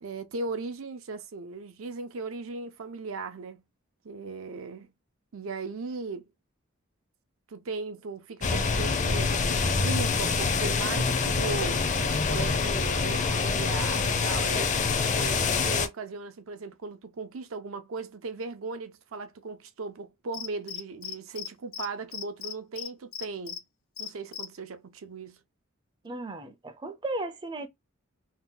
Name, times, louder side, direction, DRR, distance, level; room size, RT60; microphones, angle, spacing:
voice 1, 0.0-3.6 4.0-4.9 5.3-6.3 7.5-23.6 24.0-25.4, right 4 dB, 80° right, 0.5 m, -37 dB
sound 1, 8.4-15.9, left 4 dB, 35° left, 0.5 m, -26 dB
Cricket, 20.3-21.5 21.7-21.9 22.1-23.6 24.0-24.4, left 9 dB, 85° left, 0.5 m, -36 dB
voice 2, 26.0-27.7, right 2 dB, 25° right, 0.5 m, -35 dB
2.8 x 2.1 x 3.7 m
head